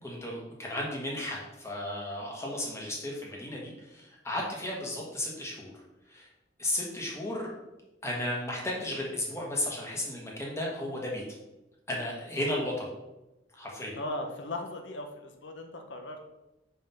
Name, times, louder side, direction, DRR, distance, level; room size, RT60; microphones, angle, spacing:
voice 1, 0.0-5.7 6.1-6.3 6.6-7.5 8.0-11.2 11.9-12.9 13.5-13.9, left 1 dB, 15° left, -3 dB, 1.4 m, -34 dB
voice 2, 13.9-16.2, left 1 dB, 85° left, 4 dB, 0.8 m, -38 dB
5.5 x 3.7 x 5.6 m, 0.97 s
head